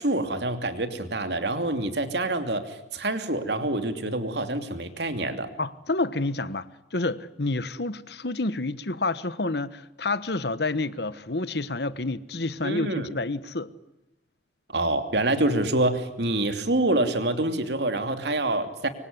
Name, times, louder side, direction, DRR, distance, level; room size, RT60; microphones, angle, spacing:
voice 1, 0.0-5.5 12.6-13.1 14.7-18.9, right 2 dB, 70° right, 2.9 m, -26 dB
voice 2, 5.6-13.7, left 2 dB, 65° left, 1.3 m, -29 dB
25.5 x 24.0 x 9.6 m
head